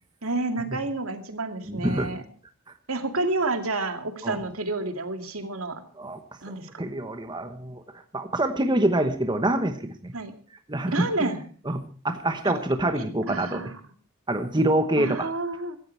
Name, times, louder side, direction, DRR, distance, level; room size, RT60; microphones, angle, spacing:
voice 1, 0.2-2.2 2.9-5.8 6.4-6.7 10.1-10.3 10.9-11.4 12.4-12.5 12.9-13.7 15.0-15.8, right 2 dB, 75° right, 6 dB, 2.3 m, -29 dB
voice 2, 1.7-2.1 4.2-4.4 6.0-6.2 6.8-7.8 8.1-10.1 10.7-11.3 11.6-13.6 14.3-15.3, right 1 dB, 20° right, 7 dB, 1.1 m, -26 dB
16.5 x 14.5 x 4.6 m, 0.43 s
head